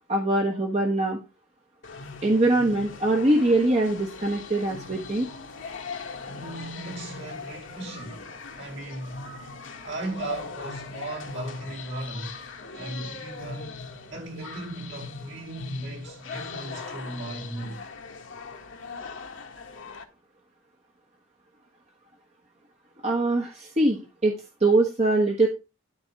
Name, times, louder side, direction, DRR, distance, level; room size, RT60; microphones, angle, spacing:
voice 1, 0.1-1.2 2.2-5.3 23.0-25.5, right 2 dB, 30° right, 1.2 m, -23 dB
sound 1, 1.8-20.0, left 4 dB, 65° left, 1.7 m, -40 dB
voice 2, 6.3-8.2 8.6-9.2 9.8-12.4 12.7-17.8, right 2 dB, 55° right, 4.7 m, -37 dB
12.5 x 4.1 x 5.8 m
head